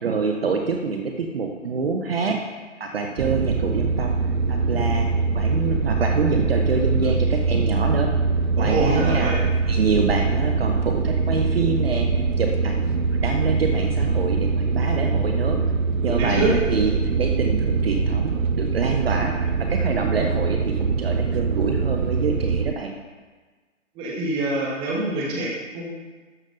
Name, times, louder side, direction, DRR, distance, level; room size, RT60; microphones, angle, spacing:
voice 1, 0.0-2.4 2.8-4.1 4.5-8.2 8.6-9.3 9.7-12.1 12.4-15.6 16.0-16.9 17.2-23.0, right 5 dB, 50° right, 3 dB, 0.8 m, -26 dB
sound 1, 3.2-22.7, right 4 dB, 85° right, 0.6 m, -23 dB
voice 2, 8.6-9.3 16.0-16.5 23.9-25.9, right 2 dB, 15° right, -4 dB, 1.2 m, -25 dB
12.0 x 7.2 x 2.6 m, 1.4 s
figure-of-eight pair, 145°, 39 cm